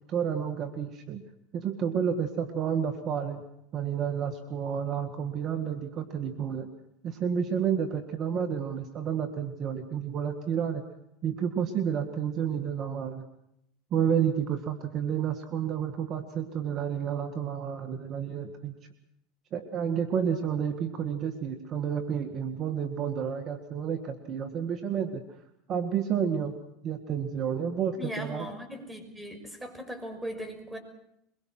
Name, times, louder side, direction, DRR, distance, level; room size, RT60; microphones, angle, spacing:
voice 1, 0.1-1.2 1.5-3.4 3.7-6.7 7.0-10.8 11.2-13.2 13.9-18.7 19.5-25.2 25.7-26.5 26.8-28.5, right 8 dB, 45° right, 8 dB, 2.0 m, -30 dB
voice 2, 28.0-30.8, equal, 10° right, 7 dB, 5.8 m, -38 dB
23.5 x 22.5 x 6.2 m, 0.78 s
hypercardioid pair, 100°, 0 cm